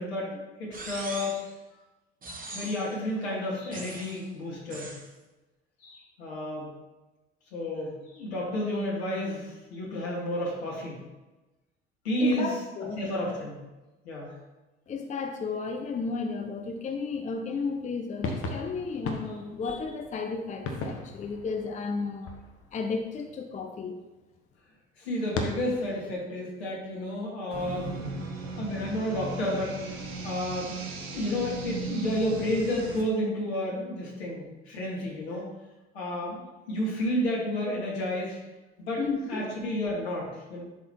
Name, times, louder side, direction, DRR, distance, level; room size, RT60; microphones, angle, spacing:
voice 1, 0.0-1.4 2.5-4.9 5.8-6.7 7.5-11.0 12.0-12.5 13.0-13.5 14.0-14.4 25.0-28.0 28.6-29.8 30.2-30.7 31.1-35.4 35.9-36.4 36.7-38.4 38.8-39.0 39.3-40.6, left 1 dB, 75° left, -4 dB, 2.2 m, -31 dB
sound 1, 0.7-1.5 2.2-3.0 3.7-4.2 4.7-5.1, right 2 dB, 25° right, 1.2 m, -41 dB
voice 2, 12.2-13.0 14.9-22.3 22.7-24.0 39.0-39.5, left 4 dB, 25° left, 4 dB, 0.6 m, -33 dB
sound 2, 18.2-23.0 25.3-26.1, left 3 dB, 45° left, 1.1 m, -37 dB
sound 3, 27.5-33.0, right 3 dB, 70° right, 1.3 m, -37 dB
11.0 x 4.0 x 3.1 m, 1.1 s
figure-of-eight pair, 60°, 32 cm